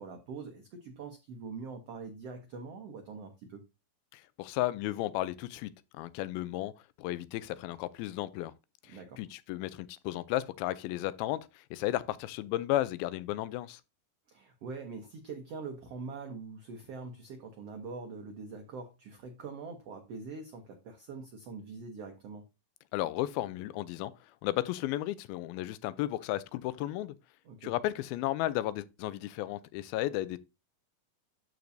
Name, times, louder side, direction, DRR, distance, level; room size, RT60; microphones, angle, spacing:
voice 1, 0.0-3.7 8.9-9.2 14.3-22.5 27.4-27.7, right 4 dB, 80° right, 1.4 m, -44 dB
voice 2, 4.1-6.7 7.0-8.5 8.8-13.8 22.9-24.1 24.4-27.1 27.6-30.4, left 15 dB, 85° left, 2.4 m, -34 dB
13.5 x 4.6 x 2.6 m
omnidirectional pair, 4.3 m